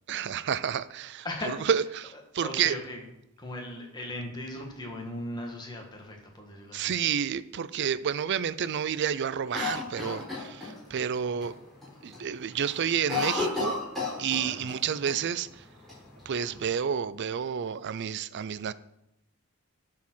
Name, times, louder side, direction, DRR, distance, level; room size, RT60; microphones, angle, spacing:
voice 1, 0.1-1.3 1.7-2.8 6.7-11.5 12.0-13.8 14.2-15.6 16.3-18.7, right 8 dB, 55° right, 0.4 m, -30 dB
voice 2, 1.2-1.6 2.4-3.1 3.4-6.9 10.7-10.9 14.4-14.6, left 1 dB, 20° left, 1.7 m, -38 dB
Cough, 9.5-11.0 11.4-11.5 11.8-12.2 12.5-14.8 15.1-15.2 15.9-16.7, left 4 dB, ahead, 4.0 m, -32 dB
10.5 x 4.8 x 6.2 m
head